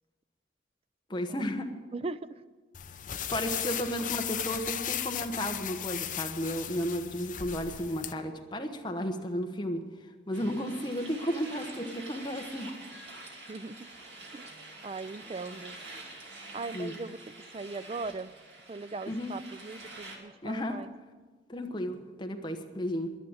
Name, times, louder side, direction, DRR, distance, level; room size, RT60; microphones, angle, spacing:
voice 1, 1.1-1.7 3.3-9.8 10.3-12.7 16.7-16.9 19.1-19.3 20.4-20.8 21.5-23.2, equal, 25° left, 4 dB, 1.0 m, -33 dB
voice 2, 1.9-2.4 13.5-13.9 14.3-14.5 14.8-15.7 16.5-17.2 17.5-18.3 18.7-20.9, right 3 dB, 30° right, 15 dB, 0.4 m, -39 dB
sound 1, 2.7-8.1, left 10 dB, 45° left, 0.6 m, -36 dB
sound 2, 10.3-20.2, right 2 dB, 70° right, 2.5 m, -47 dB
11.0 x 10.5 x 8.7 m, 1.4 s
head